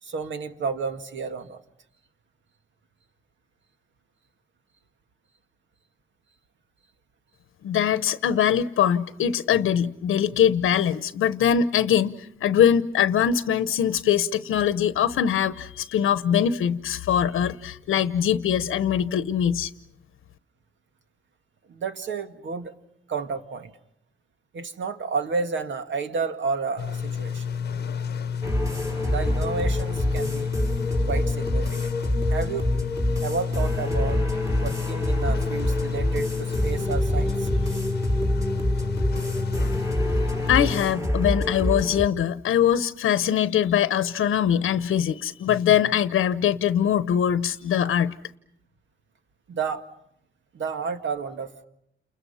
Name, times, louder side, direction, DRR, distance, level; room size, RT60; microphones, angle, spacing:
voice 1, 0.0-1.6 21.7-22.7 23.1-23.7 24.5-27.4 29.1-30.5 31.1-31.9 32.3-32.7 33.2-34.2 34.6-37.6 49.5-49.8 50.5-51.5, right 5 dB, 65° right, 2.0 m, -31 dB
voice 2, 7.6-19.7 40.5-48.1, left 9 dB, 90° left, 0.9 m, -22 dB
sound 1, 26.8-40.8, left 7 dB, 55° left, 0.9 m, -30 dB
sound 2, 28.4-42.1, left 1 dB, 15° right, 4.0 m, -26 dB
29.5 x 29.0 x 5.7 m
cardioid pair, 110°, 20 cm